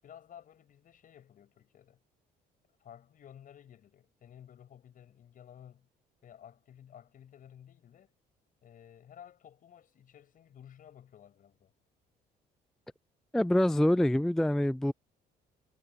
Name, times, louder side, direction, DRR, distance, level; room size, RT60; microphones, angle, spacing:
voice 1, 0.0-2.0 2.8-5.9 6.2-8.1 8.6-11.7, left 9 dB, 55° left, 7.8 m, -54 dB
voice 2, 13.3-14.9, left 1 dB, 5° left, 0.3 m, -25 dB
cardioid pair, 110°, 17 cm